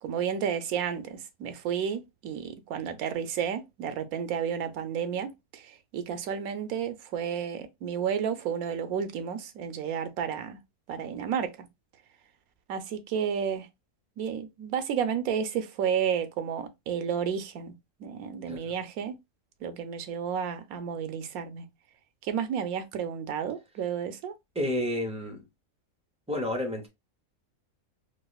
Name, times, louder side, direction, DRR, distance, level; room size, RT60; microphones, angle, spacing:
voice 1, 0.0-10.6 10.9-11.7 12.7-13.7 14.2-17.7 18.0-19.2 19.6-21.6 22.2-24.3, right 8 dB, 85° right, 1.1 m, -31 dB
voice 2, 24.6-25.4 26.3-26.9, left 1 dB, 10° right, 0.4 m, -30 dB
4.6 x 2.0 x 2.3 m
omnidirectional pair, 1.5 m